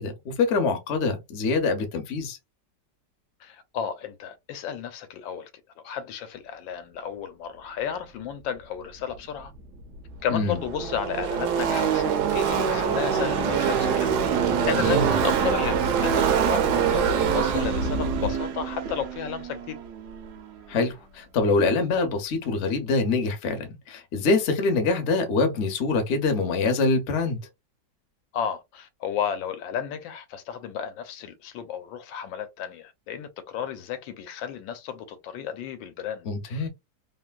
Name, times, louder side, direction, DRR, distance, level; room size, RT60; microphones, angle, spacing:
voice 1, 0.0-2.4 10.3-10.6 14.7-15.1 20.7-27.4 36.3-36.7, left 3 dB, 55° left, 0.8 m, -25 dB
voice 2, 3.4-5.5 5.8-9.5 10.2-14.1 14.4-19.8 28.3-36.7, left 8 dB, 85° left, 1.4 m, -33 dB
Car passing by / Race car auto racing, 9.5-9.6 9.8-20.4, right 7 dB, 70° right, 1.0 m, -25 dB
3.2 x 2.5 x 2.3 m
omnidirectional pair, 2.0 m